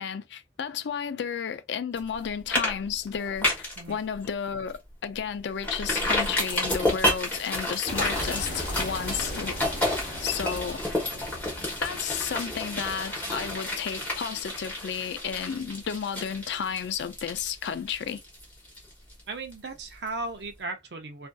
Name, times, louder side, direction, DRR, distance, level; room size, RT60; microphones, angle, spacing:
voice 1, 0.0-9.6 10.2-10.8 11.8-18.2, left 7 dB, 80° left, 0.4 m, -32 dB
sound 1, 2.0-2.2 2.5-2.7 3.0-3.8 4.2-4.3 4.7-4.8 5.6-19.2 19.5-19.6, left 1 dB, 10° left, 1.0 m, -30 dB
sound 2, 7.9-13.9, left 1 dB, 60° left, 0.9 m, -38 dB
voice 2, 19.3-21.3, right 3 dB, 70° right, 0.6 m, -36 dB
2.5 x 2.5 x 2.2 m
head